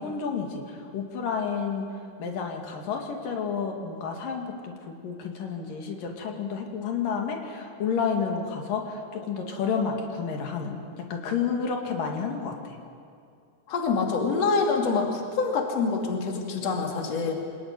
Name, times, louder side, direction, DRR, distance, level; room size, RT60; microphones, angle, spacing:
voice 1, 0.0-1.9 2.2-10.8 11.1-12.8, left 6 dB, 90° left, 2 dB, 3.9 m, -30 dB
voice 2, 13.7-17.3, left 4 dB, 50° left, 1 dB, 3.6 m, -26 dB
25.5 x 20.5 x 9.6 m, 2.4 s
omnidirectional pair, 3.7 m